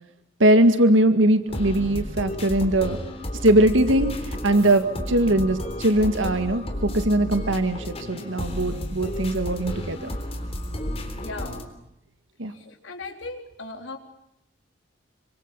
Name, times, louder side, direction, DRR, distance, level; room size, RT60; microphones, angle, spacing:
voice 1, 0.4-3.0 3.4-10.1 12.4-12.5, right 1 dB, 75° right, 9 dB, 2.0 m, -21 dB
sound 1, 1.5-11.6, left 1 dB, 30° left, 3.7 m, -32 dB
voice 2, 11.2-11.7 12.5-14.0, left 3 dB, 75° left, 4 dB, 3.9 m, -38 dB
27.0 x 25.0 x 8.5 m, 0.80 s
head